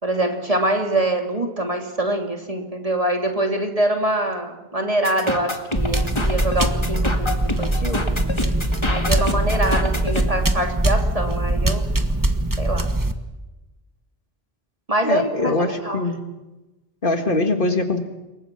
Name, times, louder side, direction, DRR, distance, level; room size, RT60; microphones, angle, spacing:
voice 1, 0.0-8.1 8.9-11.8 12.6-12.9 14.9-15.5 15.8-16.0, right 1 dB, 35° right, 3 dB, 2.7 m, -24 dB
sound 1, 5.0-10.3, left 2 dB, 25° left, 2.1 m, -27 dB
sound 2, 5.8-13.1, right 1 dB, 20° right, 1.3 m, -22 dB
voice 2, 15.0-16.2 17.0-18.0, left 2 dB, 55° left, 6 dB, 2.3 m, -22 dB
27.5 x 22.5 x 6.0 m, 1.1 s
omnidirectional pair, 1.1 m